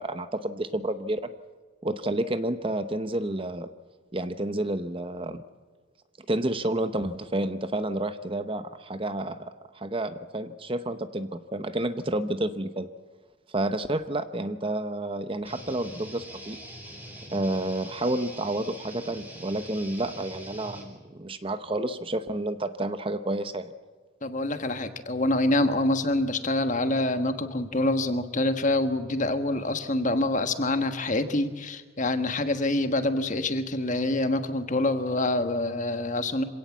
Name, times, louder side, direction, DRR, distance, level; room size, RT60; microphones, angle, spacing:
voice 1, 0.0-1.3 1.8-3.7 4.1-5.4 6.3-12.9 13.5-16.6 17.3-23.7, right 1 dB, 25° right, 11 dB, 0.8 m, -30 dB
sound 1, 15.4-20.8, right 1 dB, 10° right, 3.8 m, -43 dB
voice 2, 24.2-36.4, left 2 dB, 35° left, 8 dB, 1.4 m, -26 dB
26.0 x 17.5 x 7.4 m, 1.5 s
head